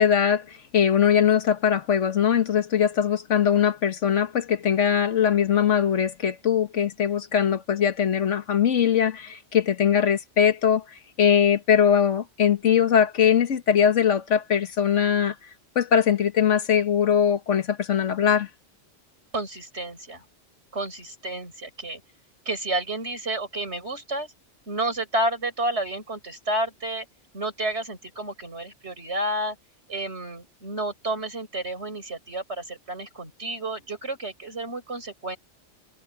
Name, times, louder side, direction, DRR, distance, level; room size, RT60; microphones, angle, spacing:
voice 1, 0.0-10.8 11.2-15.3 15.7-18.5, left 8 dB, 85° left, 1.5 m, -21 dB
voice 2, 19.3-20.2 20.7-22.0 22.4-24.3 24.7-27.1 27.3-29.6 29.9-35.4, right 1 dB, 65° right, 6.4 m, -30 dB
open air
omnidirectional pair, 1.2 m